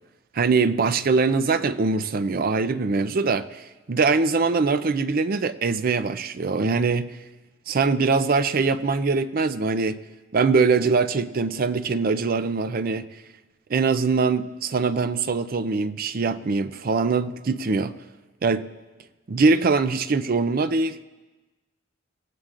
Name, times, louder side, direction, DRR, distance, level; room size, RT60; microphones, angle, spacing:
voice 1, 0.3-3.6 3.9-7.1 7.7-10.0 10.3-13.1 13.7-17.9 18.4-18.7 19.3-21.1, right 4 dB, 50° right, 12 dB, 0.5 m, -22 dB
25.5 x 16.0 x 2.5 m, 1.2 s
head